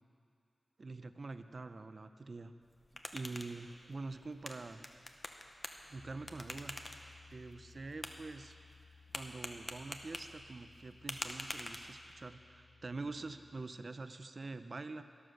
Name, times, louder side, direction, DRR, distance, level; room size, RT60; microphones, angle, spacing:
voice 1, 0.8-2.5 2.9-4.8 5.8-6.8 7.3-8.6 9.1-15.0, right 3 dB, 50° right, 10 dB, 0.6 m, -45 dB
sound 1, 2.6-12.3, left 1 dB, 35° left, 0.9 m, -48 dB
Piano, 6.0-13.6, left 5 dB, 65° left, 0.6 m, -61 dB
12.5 x 11.5 x 6.5 m, 2.3 s
wide cardioid pair, 95°, 0 cm